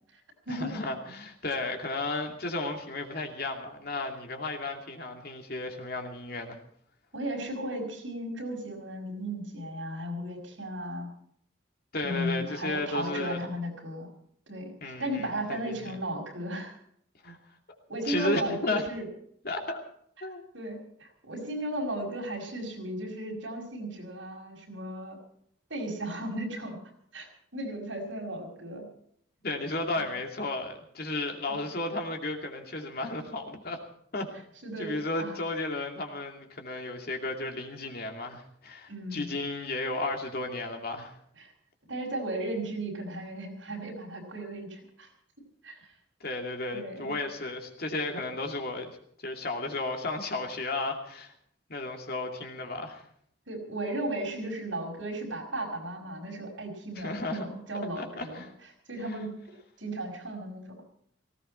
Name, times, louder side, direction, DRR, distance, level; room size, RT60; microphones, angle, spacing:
voice 1, 0.5-6.6 11.9-13.4 14.8-15.9 17.2-17.4 18.1-18.8 19.4-19.8 20.2-20.4 29.4-33.8 34.1-34.3 34.8-41.1 46.2-51.3 51.7-53.0 57.0-57.5 58.0-58.5 59.1-59.2, left 2 dB, 55° left, 3 dB, 2.6 m, -34 dB
voice 2, 7.1-11.1 12.0-14.1 14.5-16.8 17.9-19.1 20.5-25.2 25.7-26.8 27.1-28.8 30.0-30.2 31.5-31.6 34.6-35.3 38.9-39.3 41.4-41.5 41.9-45.1 45.6-45.8 46.7-47.1 53.5-58.4 58.9-59.4 59.8-60.6, right 1 dB, 85° right, 1 dB, 5.6 m, -35 dB
18.5 x 16.5 x 4.4 m, 0.68 s
head